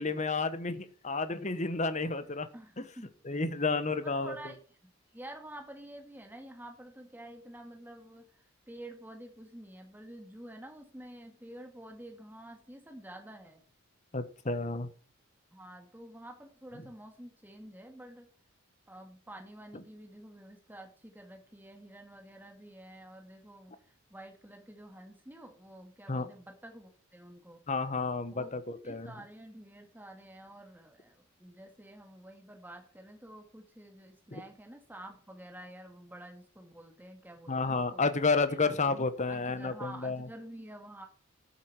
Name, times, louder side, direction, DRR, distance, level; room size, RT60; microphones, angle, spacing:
voice 1, 0.0-2.5 2.8-2.9 3.2-4.3 14.1-14.9 26.1-26.3 27.7-29.1 34.3-34.4 37.5-40.3, left 3 dB, 35° left, 12 dB, 1.1 m, -31 dB
voice 2, 2.5-3.1 4.0-4.6 4.8-13.6 15.5-18.3 18.9-27.6 28.3-28.5 28.8-38.0 38.5-41.1, right 1 dB, 10° right, 3 dB, 1.8 m, -49 dB
13.0 x 7.2 x 4.6 m, 0.42 s
head